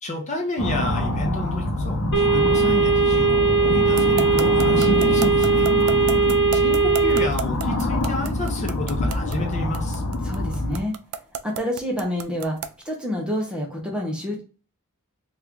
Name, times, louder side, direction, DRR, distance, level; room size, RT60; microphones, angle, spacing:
voice 1, 0.0-5.7 6.5-10.0, left 1 dB, 30° left, 2 dB, 0.7 m, -30 dB
sound 1, 0.6-10.8, left 1 dB, 90° left, 0.8 m, -25 dB
sound 2, 2.1-7.3, right 4 dB, 55° left, 1.0 m, -19 dB
sound 3, 4.0-12.8, right 7 dB, 90° right, 0.4 m, -31 dB
voice 2, 10.2-10.9 11.4-12.6 12.8-14.4, equal, 5° right, -1 dB, 0.6 m, -27 dB
3.0 x 2.4 x 3.5 m, 0.37 s
head